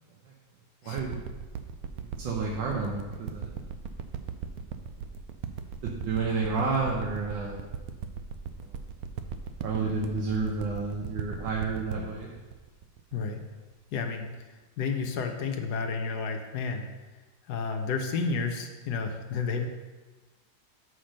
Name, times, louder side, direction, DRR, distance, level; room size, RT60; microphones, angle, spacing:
voice 1, 0.8-1.2 2.0-3.6 5.0-5.1 5.8-7.6 8.6-8.8 9.6-12.3, right 4 dB, 85° right, -2 dB, 1.6 m, -31 dB
sound 1, 1.0-13.7 14.3-14.4, right 7 dB, 70° right, 0.9 m, -38 dB
voice 2, 13.1-13.4 13.9-14.3 14.8-16.8 17.5-19.7, left 5 dB, 65° left, 4 dB, 1.3 m, -31 dB
5.8 x 5.1 x 6.4 m, 1.3 s
omnidirectional pair, 2.0 m